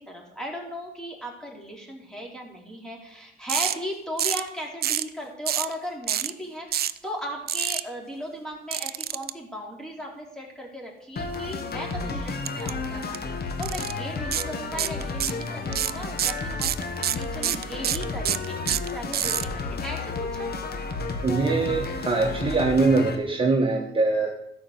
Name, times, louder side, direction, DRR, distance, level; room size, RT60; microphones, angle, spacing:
voice 1, 0.0-13.2 13.6-18.6 18.9-20.5, equal, 5° left, -1 dB, 3.7 m, -37 dB
sound 1, 3.5-3.7 4.2-4.5 4.8-5.1 5.5-5.7 6.1-6.3 6.7-7.0 7.5-7.8 8.7-9.3 12.4-12.7 13.0-13.2 13.6-13.9 14.3-14.5 14.8-15.4 15.7-19.4, right 10 dB, 50° right, 0.5 m, -26 dB
sound 2, 11.2-23.2, left 3 dB, 55° left, 1.6 m, -32 dB
voice 2, 21.2-24.3, right 3 dB, 25° right, 0 dB, 1.4 m, -22 dB
13.0 x 5.3 x 8.1 m, 0.85 s
cardioid pair, 90°, 20 cm